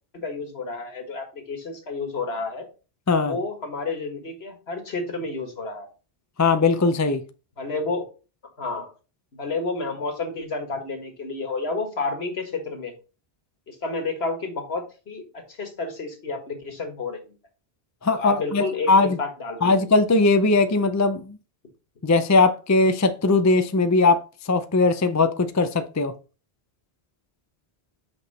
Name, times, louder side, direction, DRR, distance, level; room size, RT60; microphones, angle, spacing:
voice 1, 0.1-2.7 3.2-5.9 7.6-8.1 8.6-8.9 9.3-12.9 13.7-17.4 18.1-19.7, left 3 dB, 70° left, 1.9 m, -30 dB
voice 2, 3.1-3.4 6.4-7.2 18.0-19.2 19.6-21.4 22.0-26.1, left 3 dB, 30° left, 0.3 m, -20 dB
6.0 x 5.5 x 4.1 m
omnidirectional pair, 1.1 m